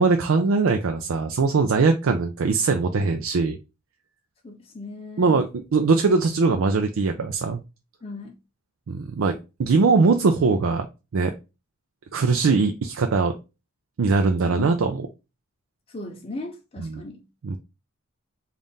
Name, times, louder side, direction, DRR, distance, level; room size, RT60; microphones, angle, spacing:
voice 1, 0.0-3.6 5.2-7.6 8.9-10.9 11.1-11.3 12.1-13.4 14.0-15.1 16.8-17.0 17.4-17.6, right 4 dB, 70° right, 0.4 m, -21 dB
voice 2, 4.4-5.4 8.0-8.4 14.4-14.7 15.9-17.2, left 2 dB, 25° left, 0.5 m, -37 dB
3.5 x 2.5 x 4.0 m
head